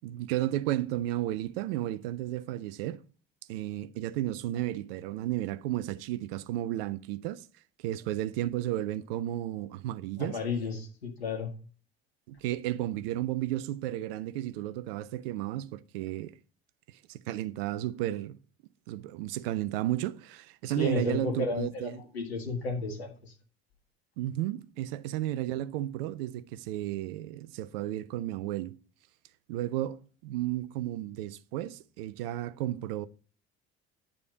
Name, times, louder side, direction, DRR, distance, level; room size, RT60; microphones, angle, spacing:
voice 1, 0.0-3.0 3.5-7.5 7.8-10.4 12.3-16.3 16.9-18.4 18.9-22.0 24.2-28.8 29.5-33.1, right 14 dB, 65° right, 0.7 m, -33 dB
voice 2, 10.2-11.5 20.8-23.3, left 3 dB, 85° left, 1.7 m, -33 dB
10.0 x 6.8 x 3.9 m
figure-of-eight pair, 55°, 31 cm